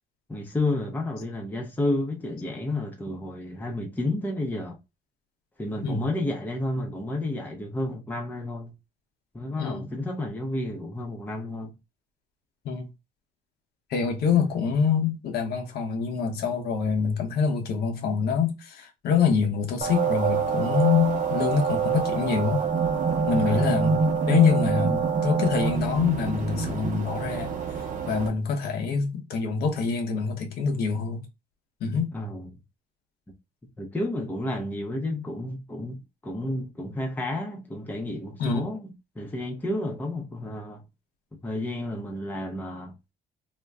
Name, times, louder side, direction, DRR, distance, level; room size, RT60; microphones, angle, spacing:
voice 1, 0.3-4.8 5.6-8.7 9.3-11.7 23.4-23.8 32.1-32.5 33.8-38.9 39.2-40.8 41.3-42.9, left 1 dB, 10° left, 0.7 m, -31 dB
voice 2, 9.6-9.9 12.6-12.9 13.9-22.6 23.3-24.0 24.3-27.5 28.1-31.2 31.8-32.1 38.4-38.6, left 6 dB, 70° left, 0.8 m, -25 dB
sound 1, 19.8-28.3, right 6 dB, 50° right, 0.8 m, -26 dB
2.5 x 2.1 x 3.3 m
cardioid pair, 110°, 17 cm